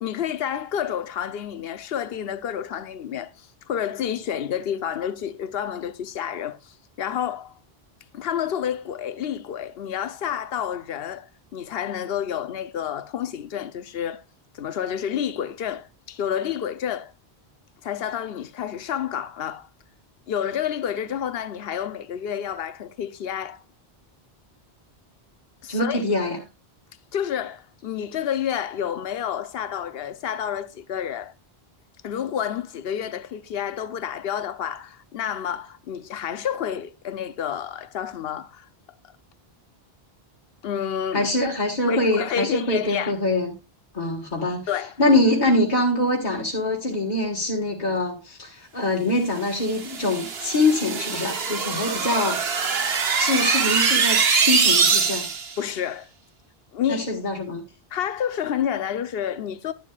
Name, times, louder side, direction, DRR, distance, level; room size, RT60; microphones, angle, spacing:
voice 1, 0.0-7.5 8.1-14.2 14.5-17.1 17.8-19.7 20.3-23.6 25.6-26.0 27.1-31.3 32.0-38.7 40.6-41.3 41.9-43.2 44.7-44.9 55.6-56.1 56.7-57.1 57.9-59.7, left 9 dB, 70° left, 0.9 m, -29 dB
voice 2, 25.7-26.4 41.1-43.6 43.9-44.7 45.0-52.4 53.2-55.3 56.9-57.6, left 2 dB, 45° left, 1.8 m, -24 dB
sound 1, 49.6-55.5, right 5 dB, 75° right, 1.3 m, -23 dB
11.5 x 11.0 x 2.4 m
omnidirectional pair, 1.0 m